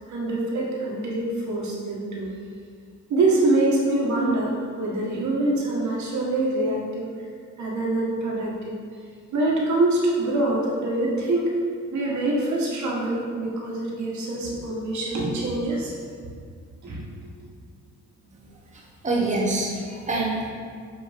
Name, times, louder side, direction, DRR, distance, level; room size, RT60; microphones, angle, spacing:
voice 1, 0.1-2.3 3.1-7.1 7.6-8.7 9.3-11.6 11.9-15.9 16.8-17.0, right 2 dB, 70° right, -3 dB, 1.5 m, -25 dB
voice 2, 18.7-20.5, right 2 dB, 25° right, -4 dB, 1.3 m, -26 dB
7.7 x 4.5 x 3.5 m, 2.1 s
cardioid pair, 90°, 30 cm